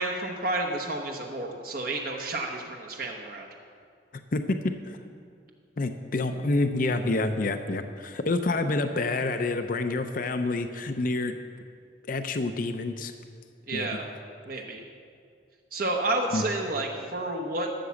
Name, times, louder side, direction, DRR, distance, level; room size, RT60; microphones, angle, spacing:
voice 1, 0.0-3.5 13.7-14.1 14.4-14.8 15.7-17.7, right 2 dB, 55° right, 1 dB, 1.0 m, -30 dB
voice 2, 4.3-5.0 5.8-11.3 12.1-13.1 13.7-14.0 14.6-14.7 16.3-16.4, left 2 dB, 50° left, 8 dB, 0.6 m, -28 dB
13.0 x 7.4 x 7.0 m, 2.2 s
head